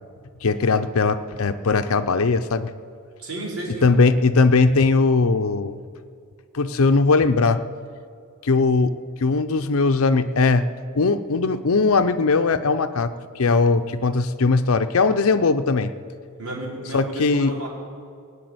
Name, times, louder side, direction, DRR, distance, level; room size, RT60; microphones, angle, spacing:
voice 1, 0.4-2.7 3.8-5.8 6.5-7.6 8.4-8.9 9.2-10.7 10.9-15.9 16.9-17.6, left 4 dB, 65° left, 9 dB, 0.6 m, -19 dB
voice 2, 3.2-3.9 16.4-17.7, right 1 dB, 80° right, -4 dB, 4.7 m, -32 dB
18.0 x 7.0 x 9.5 m, 2.3 s
head